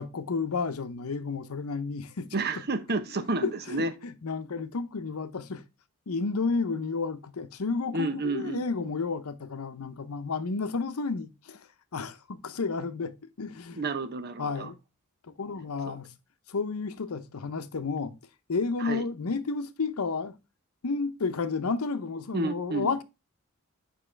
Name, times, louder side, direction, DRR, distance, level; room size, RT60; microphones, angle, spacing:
voice 1, 0.0-2.3 3.4-5.6 6.1-13.8 14.4-14.8 15.3-16.1 16.5-18.2 18.5-20.4 20.8-23.0, left 4 dB, 85° left, 0.7 m, -31 dB
voice 2, 2.3-3.9 7.9-8.9 13.7-14.7 15.9-16.0 18.8-19.0 22.3-22.9, right 3 dB, 50° right, 0.9 m, -31 dB
7.5 x 5.5 x 3.3 m
head